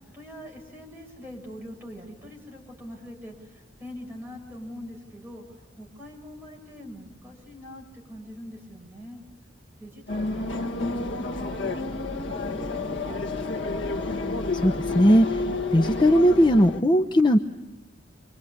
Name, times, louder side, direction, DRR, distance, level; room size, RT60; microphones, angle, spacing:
voice 1, 0.0-5.4 5.8-9.2 9.8-13.3, equal, 10° right, -1 dB, 6.5 m, -43 dB
sound 1, 10.1-16.8, left 3 dB, 75° left, 1.6 m, -30 dB
voice 2, 14.5-15.4 15.7-17.4, equal, 25° left, 4 dB, 0.8 m, -18 dB
27.5 x 24.0 x 8.6 m, 1.0 s
head